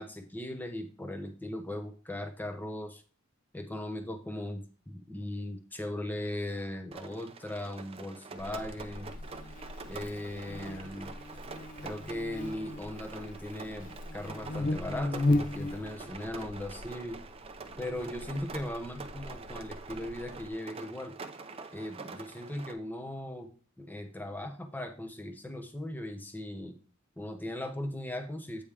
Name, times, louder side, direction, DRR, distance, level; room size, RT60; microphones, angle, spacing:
voice 1, 0.0-3.0 3.5-9.1 9.9-11.1 11.8-17.2 17.8-21.2 21.7-23.5 23.8-26.8 27.2-28.6, left 1 dB, 10° left, 6 dB, 0.8 m, -38 dB
Rain, 6.9-22.7, right 4 dB, 30° right, 0.5 m, -46 dB
Buzz, 8.4-20.5, left 2 dB, 40° left, 0.4 m, -37 dB
8.5 x 5.2 x 3.4 m, 0.39 s
head